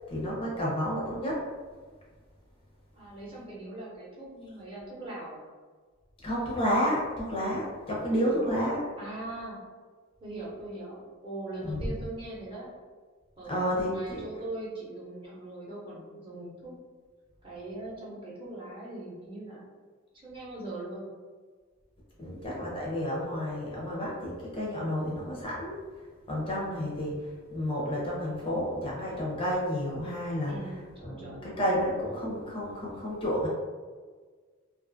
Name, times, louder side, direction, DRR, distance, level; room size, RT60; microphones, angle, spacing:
voice 1, 0.1-1.4 6.2-8.8 11.6-11.9 13.5-14.2 22.2-25.8 26.3-30.5 31.0-33.5, equal, 25° left, -5 dB, 0.5 m, -30 dB
voice 2, 2.9-5.5 8.3-8.5 9.0-9.6 10.2-12.7 13.4-16.7 17.4-19.6 20.2-21.0 30.5-31.5, right 2 dB, 25° right, -6 dB, 0.8 m, -41 dB
2.5 x 2.4 x 2.5 m, 1.5 s
head